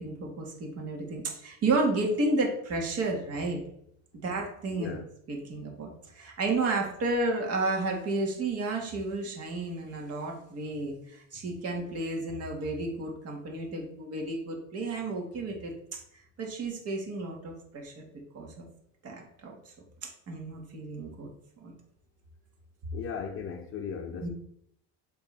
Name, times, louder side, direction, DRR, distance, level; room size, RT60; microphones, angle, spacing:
voice 1, 0.0-3.6 4.1-5.0 5.3-15.7 16.4-18.1 18.3-18.7 19.0-19.7 20.0-21.3 21.6-21.7 24.2-24.3, right 2 dB, 45° right, 1.9 m, -32 dB
voice 2, 4.7-5.1 22.9-24.3, left 6 dB, 40° left, 0.6 m, -37 dB
8.0 x 3.4 x 3.4 m
cardioid pair, 120°, 34 cm